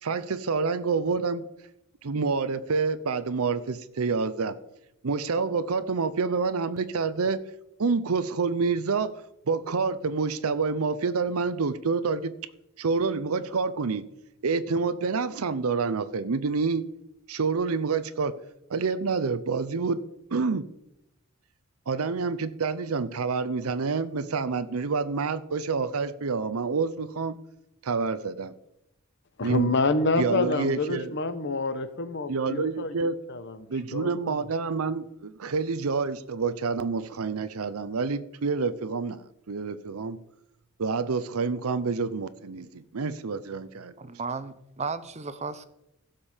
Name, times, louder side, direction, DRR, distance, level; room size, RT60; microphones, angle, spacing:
voice 1, 0.0-1.4 2.0-4.6 5.0-7.4 7.8-9.1 9.5-12.3 12.8-14.0 14.4-16.8 17.3-18.3 18.7-20.0 20.3-20.7 21.9-27.4 27.8-28.5 29.4-29.7 30.2-31.1 32.3-33.1 33.7-40.2 40.8-43.9, right 4 dB, 85° right, 13 dB, 0.7 m, -28 dB
voice 2, 29.4-34.5, left 3 dB, 55° left, 11 dB, 1.0 m, -28 dB
voice 3, 44.0-45.7, right 4 dB, 30° right, 13 dB, 0.7 m, -34 dB
15.5 x 5.3 x 7.2 m, 0.84 s
head